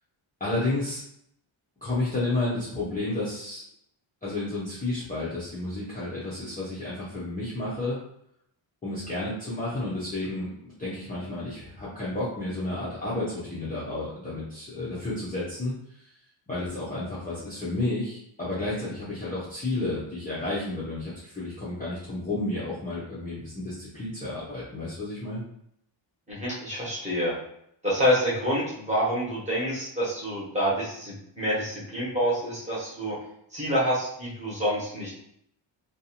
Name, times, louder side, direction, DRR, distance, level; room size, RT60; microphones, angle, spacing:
voice 1, 0.4-1.0 1.8-3.6 4.2-8.0 8.8-16.1 16.5-25.4, left 2 dB, 20° left, -10 dB, 0.5 m, -31 dB
voice 2, 26.3-27.3 27.8-33.2 33.5-35.1, equal, 15° right, -7 dB, 0.9 m, -27 dB
2.6 x 2.3 x 2.7 m, 0.72 s
wide cardioid pair, 180°, 49 cm